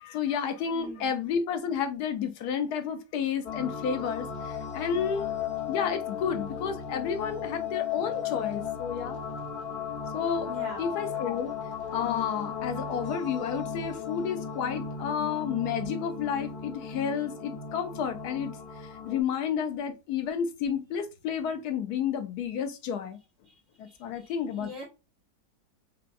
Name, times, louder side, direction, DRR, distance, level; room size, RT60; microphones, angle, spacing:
voice 1, 0.0-5.3 5.7-9.2 10.1-10.5 10.8-11.5 11.9-18.6 19.1-23.2 23.8-24.8, left 7 dB, 85° left, 1.3 m, -31 dB
voice 2, 0.7-1.1 10.5-11.0 23.4-24.8, equal, 15° right, 1.1 m, -44 dB
sound 1, 3.4-19.2, left 7 dB, 40° left, 0.7 m, -35 dB
5.5 x 2.2 x 2.5 m
omnidirectional pair, 1.7 m